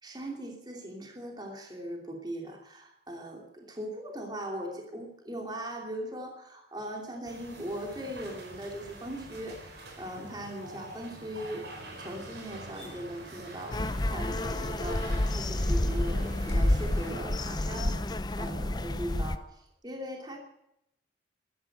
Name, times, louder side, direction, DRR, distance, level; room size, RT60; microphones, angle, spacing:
voice 1, 0.0-20.4, right 1 dB, 20° right, 2 dB, 2.8 m, -39 dB
sound 1, 7.2-17.1, right 1 dB, 65° right, 4.6 m, -45 dB
sound 2, 13.7-19.4, left 1 dB, 20° left, 0.6 m, -29 dB
13.5 x 13.5 x 7.8 m, 0.77 s
head